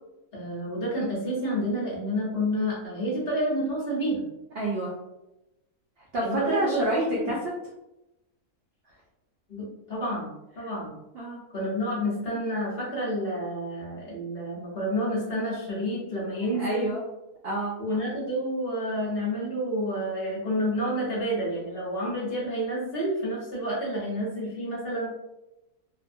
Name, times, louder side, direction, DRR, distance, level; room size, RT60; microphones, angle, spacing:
voice 1, 0.3-4.2 6.2-6.8 7.1-7.3 9.5-10.3 10.6-10.9 11.5-16.9 17.8-25.1, equal, 45° left, -6 dB, 1.0 m, -29 dB
voice 2, 4.6-4.9 6.1-7.5 11.1-11.4 16.6-17.0 17.4-17.8, right 1 dB, 70° right, -4 dB, 0.5 m, -28 dB
2.7 x 2.2 x 2.5 m, 0.92 s
omnidirectional pair, 1.6 m